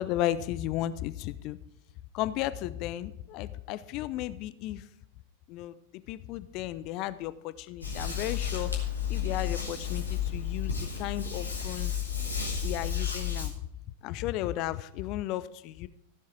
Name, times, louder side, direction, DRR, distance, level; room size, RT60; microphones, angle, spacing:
voice 1, 0.0-1.6 2.1-4.8 5.5-5.7 6.1-8.7 9.1-11.9 12.6-13.5 14.0-15.9, left 13 dB, 40° left, 15 dB, 0.5 m, -34 dB
sound 1, 7.8-13.5, left 8 dB, 80° left, 2.4 m, -32 dB
15.5 x 7.3 x 4.6 m, 0.78 s
figure-of-eight pair, 90°, 0 cm